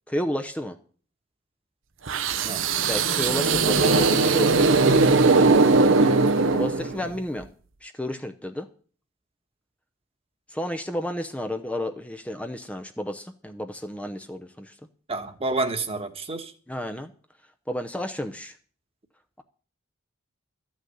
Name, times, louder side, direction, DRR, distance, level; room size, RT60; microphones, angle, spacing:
voice 1, 0.1-0.8 2.8-5.2 6.5-7.5 7.8-8.7 10.5-14.8 16.7-17.1 17.7-18.6, left 1 dB, 5° left, 0.7 m, -31 dB
sound 1, 2.1-7.2, right 3 dB, 75° right, 0.9 m, -19 dB
voice 2, 15.1-16.5, right 2 dB, 30° right, 1.3 m, -30 dB
13.5 x 6.4 x 9.3 m
head